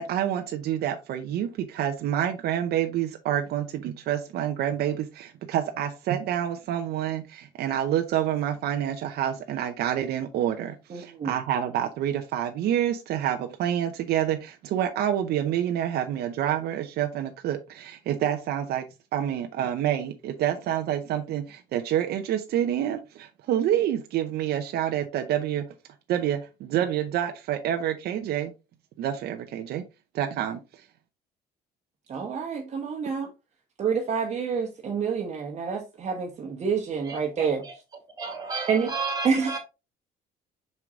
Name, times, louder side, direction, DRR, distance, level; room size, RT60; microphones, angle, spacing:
voice 1, 0.0-18.9 19.1-25.6 26.1-28.5 29.0-29.8 30.1-30.6, right 10 dB, 70° right, 0.7 m, -28 dB
voice 2, 10.9-11.3 32.1-33.3 33.8-37.6 38.7-38.9 39.2-39.6, right 6 dB, 40° right, 1.3 m, -28 dB
voice 3, 37.0-37.7 38.2-39.6, right 4 dB, 20° right, 2.2 m, -33 dB
5.6 x 4.7 x 3.6 m
cardioid pair, 110°, 17 cm